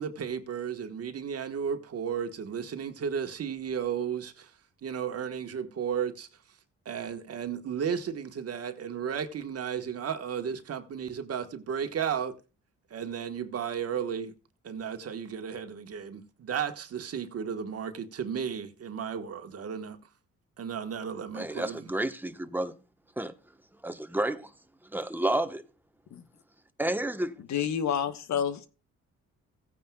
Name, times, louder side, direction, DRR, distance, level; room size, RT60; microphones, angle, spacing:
voice 1, 0.0-4.5 4.8-6.3 6.8-12.4 12.9-14.3 14.6-20.0 20.6-21.9, right 7 dB, 50° right, 1.4 m, -34 dB
voice 2, 21.3-22.7 23.2-23.3 23.8-24.5 24.9-25.6 26.8-27.3, right 1 dB, 5° right, 1.1 m, -30 dB
voice 3, 27.5-28.7, left 8 dB, 65° left, 1.1 m, -29 dB
16.5 x 9.3 x 2.3 m
cardioid pair, 90°, 30 cm